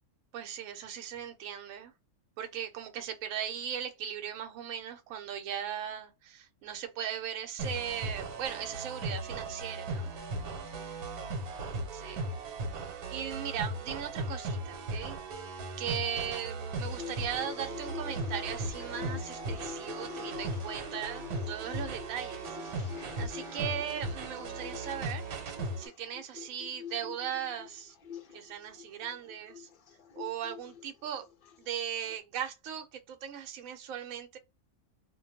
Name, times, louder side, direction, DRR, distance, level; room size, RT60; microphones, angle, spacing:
voice 1, 0.3-1.9 2.4-10.1 11.9-12.2 13.1-15.2 15.8-25.2 25.8-28.0 28.3-29.7 30.2-31.3 31.6-34.4, right 9 dB, 70° right, 1.0 m, -38 dB
sound 1, 7.6-25.9, right 2 dB, 85° right, 1.2 m, -37 dB
sound 2, 16.5-32.2, left 8 dB, 65° left, 0.5 m, -46 dB
2.5 x 2.2 x 2.7 m
omnidirectional pair, 1.6 m